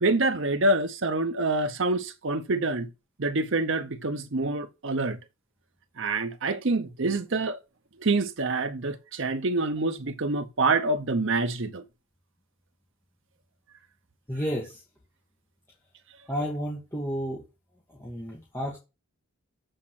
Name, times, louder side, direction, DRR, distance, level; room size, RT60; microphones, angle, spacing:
voice 1, 0.0-2.9 3.2-5.2 6.0-7.6 8.0-11.8, right 2 dB, 60° right, 0.8 m, -26 dB
voice 2, 14.3-14.8 16.3-17.4 18.0-18.8, equal, 10° left, 1.8 m, -31 dB
7.9 x 4.3 x 5.9 m
head